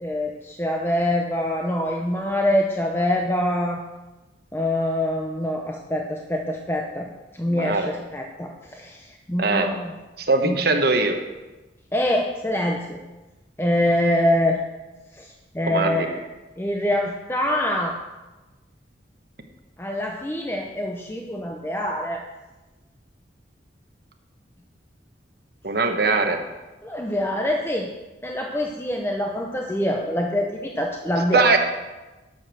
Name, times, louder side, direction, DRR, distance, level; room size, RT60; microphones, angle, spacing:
voice 1, 0.0-3.8 4.5-7.1 7.3-9.9 10.4-10.8 11.9-13.0 13.6-14.6 15.1-16.2 16.6-18.0 19.8-22.2 26.8-27.9 28.2-31.6, left 1 dB, 10° left, 1 dB, 0.7 m, -25 dB
voice 2, 7.5-7.9 9.4-9.7 10.2-11.2 15.7-16.1 25.6-26.4 31.3-31.6, right 3 dB, 55° right, 5 dB, 1.2 m, -21 dB
11.0 x 7.0 x 6.3 m, 1.1 s
head